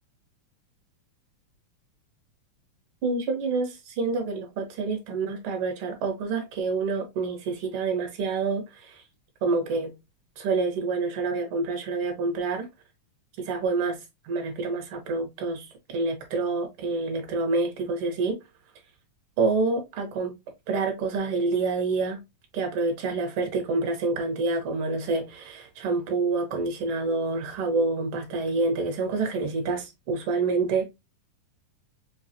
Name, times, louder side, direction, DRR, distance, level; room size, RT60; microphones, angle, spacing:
voice 1, 3.0-9.0 9.4-9.9 10.4-12.7 13.4-14.0 14.2-18.4 19.4-20.4 20.7-22.2 22.5-30.8, right 3 dB, 55° right, 1.6 m, -27 dB
5.6 x 2.4 x 2.6 m
omnidirectional pair, 3.5 m